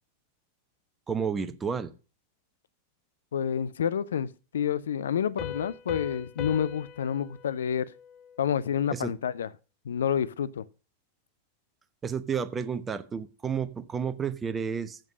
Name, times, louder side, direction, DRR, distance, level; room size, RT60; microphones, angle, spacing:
voice 1, 1.1-1.9 8.9-9.1 12.0-15.0, right 6 dB, 20° right, 0.9 m, -31 dB
voice 2, 3.3-4.3 4.5-7.9 8.4-9.5 9.8-10.7, left 8 dB, 65° left, 0.5 m, -28 dB
Piano, 5.4-8.8, left 8 dB, 30° left, 0.8 m, -41 dB
7.7 x 7.2 x 6.0 m
figure-of-eight pair, 90°, 0 cm